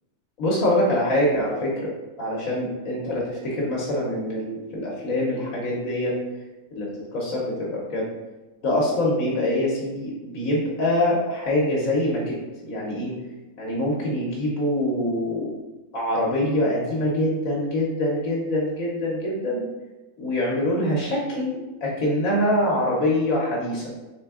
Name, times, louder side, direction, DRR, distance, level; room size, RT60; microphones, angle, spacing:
voice 1, 0.4-1.9 2.2-6.2 6.8-8.1 8.6-12.4 12.6-13.1 13.6-15.6 15.9-19.6 20.2-23.8, left 1 dB, 75° left, -4 dB, 1.2 m, -24 dB
3.4 x 3.3 x 3.5 m, 1.1 s
omnidirectional pair, 1.4 m